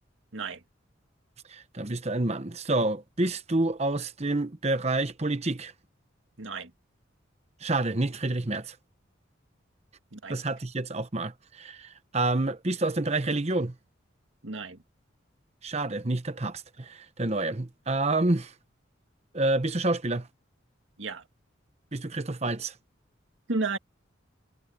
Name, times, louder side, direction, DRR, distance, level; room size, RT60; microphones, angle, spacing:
voice 1, 1.5-5.7 7.6-8.7 10.3-13.7 15.6-18.5 19.3-20.3 21.9-22.7, right 2 dB, 35° right, 1.1 m, -28 dB
voice 2, 6.4-6.7 10.1-10.4 14.4-14.8 21.0-21.2 23.5-23.8, right 3 dB, 75° right, 2.0 m, -32 dB
head